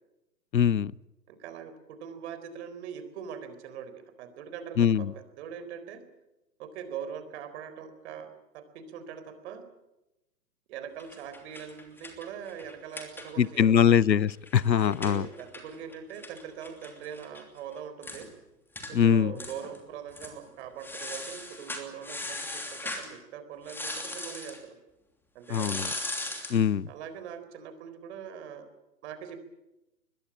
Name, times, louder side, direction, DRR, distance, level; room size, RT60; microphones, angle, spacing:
voice 1, 0.5-0.9 4.8-5.0 13.4-15.2 18.9-19.3 25.5-25.9 26.5-26.9, left 8 dB, 90° left, 24 dB, 0.8 m, -22 dB
voice 2, 1.3-6.0 6.6-9.6 10.7-14.0 14.8-18.3 18.9-24.8 25.3-25.9 26.9-28.7 29.0-29.4, right 8 dB, 40° right, 11 dB, 4.2 m, -42 dB
sound 1, 11.0-13.6 13.9-14.0 14.3-17.4 17.7-17.8 18.0-18.3 18.8-18.9 19.4-19.8 20.1-20.4 20.8-23.1 23.7-24.6 25.5-26.6, left 2 dB, 5° left, 2.9 m, -39 dB
22.5 x 21.0 x 8.7 m, 0.96 s
hypercardioid pair, 135°, 50 cm